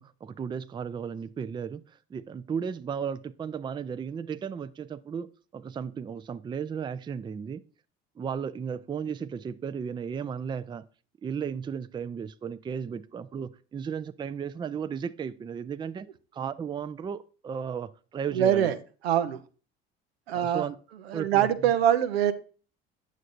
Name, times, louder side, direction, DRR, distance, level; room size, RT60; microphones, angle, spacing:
voice 1, 0.0-1.8 2.1-5.3 5.5-7.6 8.2-10.8 11.2-16.1 16.3-18.7 20.3-20.8 21.1-21.5, right 7 dB, 15° right, 0.3 m, -35 dB
voice 2, 18.3-18.8 19.0-19.4 20.3-20.7 21.1-22.3, right 10 dB, 90° right, 0.5 m, -24 dB
8.3 x 6.5 x 2.5 m
hypercardioid pair, 60°, 30 cm